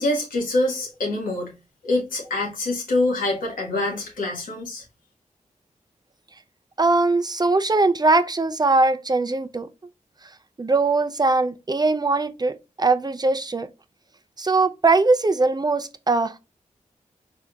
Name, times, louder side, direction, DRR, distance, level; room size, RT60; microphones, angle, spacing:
voice 1, 0.0-1.5 1.8-4.8, left 2 dB, 90° left, 1.3 m, -25 dB
voice 2, 6.8-9.7 10.6-13.7 14.4-16.4, right 3 dB, 30° right, 0.5 m, -21 dB
4.4 x 3.4 x 2.3 m
cardioid pair, 40°, 14 cm